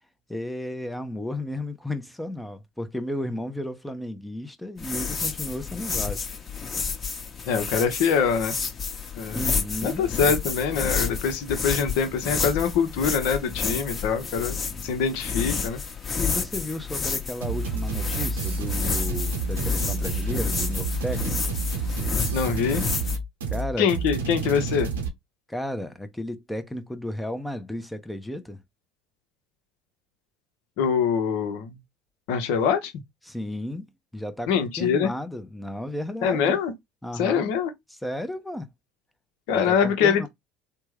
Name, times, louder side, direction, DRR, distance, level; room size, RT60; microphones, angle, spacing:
voice 1, 0.3-6.3 9.3-10.1 14.7-14.9 16.2-21.6 23.5-23.9 25.5-28.6 33.2-36.6 37.0-37.5 38.0-38.7 39.5-40.3, left 1 dB, 5° left, 0.6 m, -33 dB
sound 1, 4.8-23.2, left 5 dB, 30° left, 1.1 m, -30 dB
voice 2, 7.5-8.5 9.2-9.5 9.8-14.6 14.8-15.8 22.3-22.8 23.8-24.9 30.8-31.7 32.3-32.9 34.5-35.1 36.2-36.7 37.1-37.7 39.5-40.3, left 6 dB, 65° left, 0.8 m, -24 dB
sound 2, 17.4-25.1, right 3 dB, 90° right, 0.8 m, -29 dB
3.4 x 2.1 x 3.1 m
hypercardioid pair, 80°, 0 cm